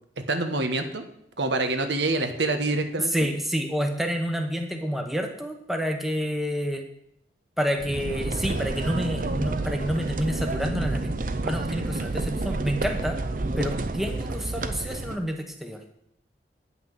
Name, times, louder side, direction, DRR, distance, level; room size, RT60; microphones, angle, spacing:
voice 1, 0.2-1.0 1.4-3.1, right 2 dB, 85° right, 7 dB, 1.2 m, -26 dB
voice 2, 3.1-6.9 7.6-11.1 11.4-13.2 13.6-15.8, equal, ahead, 4 dB, 0.9 m, -28 dB
sound 1, 7.8-15.2, right 2 dB, 50° right, 0.6 m, -29 dB
9.5 x 5.8 x 7.8 m, 0.74 s
head